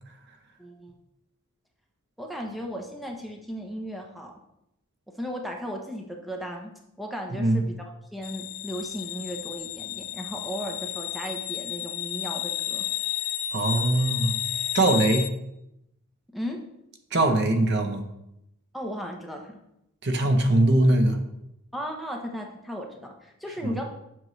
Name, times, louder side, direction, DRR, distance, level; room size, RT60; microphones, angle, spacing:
voice 1, 0.6-0.9 2.2-4.3 5.2-6.7 7.0-12.8 16.3-16.6 18.7-19.6 21.7-23.8, equal, ahead, 0 dB, 0.8 m, -35 dB
voice 2, 7.3-7.6 13.5-14.3 14.7-15.3 17.1-18.0 20.0-21.2 23.6-23.7, right 2 dB, 55° right, 6 dB, 0.8 m, -21 dB
sound 1, 8.2-15.3, left 12 dB, 70° left, 0.5 m, -32 dB
7.7 x 6.2 x 3.2 m, 0.83 s
head